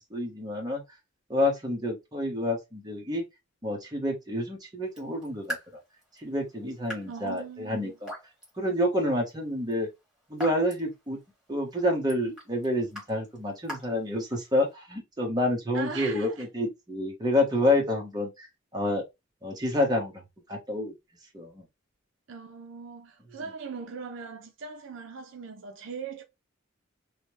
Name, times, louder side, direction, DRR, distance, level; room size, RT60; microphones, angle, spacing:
voice 1, 0.1-0.8 1.3-3.2 3.6-5.6 6.2-8.1 8.6-9.9 10.3-11.2 11.5-18.5 18.7-19.0 19.4-20.1 20.5-20.9 21.3-21.6, left 1 dB, 20° right, 0.9 m, -28 dB
Raindrop / Drip, 4.8-14.7, equal, 5° right, 1.4 m, -45 dB
voice 2, 7.1-8.0 15.7-16.4 22.3-26.2, right 5 dB, 65° right, 0.5 m, -40 dB
3.2 x 2.1 x 3.1 m
head